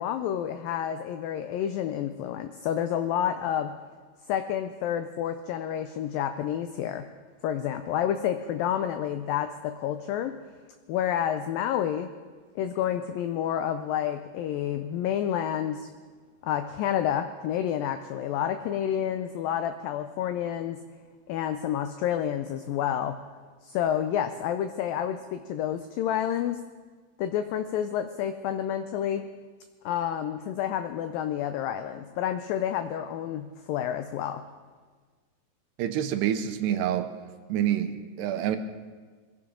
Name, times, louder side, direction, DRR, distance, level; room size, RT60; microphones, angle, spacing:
voice 1, 0.0-3.8 4.3-7.1 7.4-10.4 10.9-12.1 12.6-15.9 16.4-20.8 21.3-23.2 23.6-26.6 27.2-29.3 29.9-34.4, left 10 dB, 80° left, 9 dB, 2.1 m, -29 dB
voice 2, 35.8-37.1 37.5-38.6, right 10 dB, 85° right, 8 dB, 2.9 m, -27 dB
22.0 x 15.5 x 3.8 m, 1.5 s
omnidirectional pair, 4.6 m